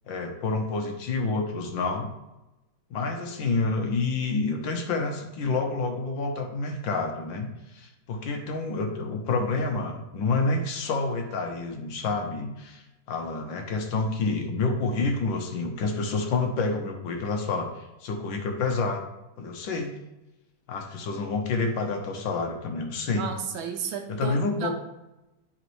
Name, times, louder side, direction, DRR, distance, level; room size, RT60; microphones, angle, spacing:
voice 1, 0.1-2.1 2.9-19.0 19.4-19.9 20.7-23.3 24.1-24.7, left 3 dB, 70° left, 3 dB, 1.5 m, -28 dB
voice 2, 23.1-24.7, right 7 dB, 75° right, 6 dB, 1.4 m, -33 dB
11.0 x 4.2 x 3.1 m, 0.96 s
omnidirectional pair, 2.3 m